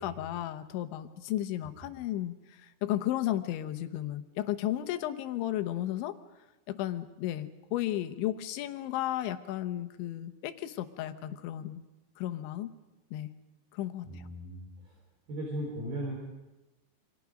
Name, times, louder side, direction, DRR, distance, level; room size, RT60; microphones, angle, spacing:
voice 1, 0.0-6.2 6.7-11.8 12.2-12.7 13.1-13.3 13.7-14.2, left 13 dB, 90° left, 9 dB, 3.4 m, -34 dB
voice 2, 14.1-15.0 15.3-16.2, right 1 dB, 55° right, -1 dB, 5.6 m, -37 dB
28.0 x 25.5 x 5.2 m, 1.0 s
omnidirectional pair, 5.2 m